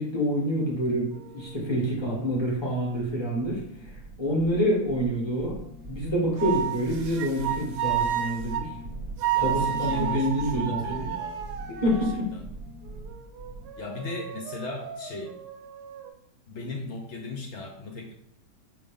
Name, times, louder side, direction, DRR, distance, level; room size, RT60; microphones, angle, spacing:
voice 1, 0.0-3.9 4.2-5.5 5.9-8.7 9.4-11.1 11.8-12.3, equal, 20° left, -3 dB, 1.1 m, -27 dB
sound 1, 0.9-1.1 1.4-2.1 2.4-3.1 3.4-13.7, right 2 dB, 40° right, 0.7 m, -41 dB
sound 2, 1.1-1.7 6.4-8.7 9.2-12.2 12.8-16.1, right 10 dB, 75° right, 1.1 m, -32 dB
voice 2, 9.3-11.4 11.9-12.0 12.3-12.4 13.8-15.3 16.5-18.1, left 3 dB, 80° left, 1 dB, 0.6 m, -37 dB
4.9 x 2.9 x 3.5 m, 0.75 s
omnidirectional pair, 1.8 m